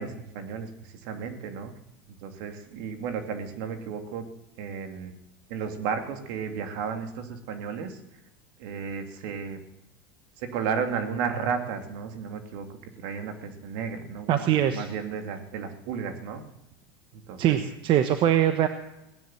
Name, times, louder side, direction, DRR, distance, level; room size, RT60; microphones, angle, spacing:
voice 1, 0.0-1.7 2.1-4.3 4.6-5.1 5.5-8.0 8.6-9.6 10.4-16.4 17.1-17.7, right 6 dB, 65° right, 6 dB, 2.7 m, -33 dB
voice 2, 14.3-14.9 17.4-18.7, right 11 dB, 45° right, 9 dB, 1.2 m, -22 dB
17.5 x 10.5 x 7.4 m, 0.86 s
supercardioid pair, 110°, 12 cm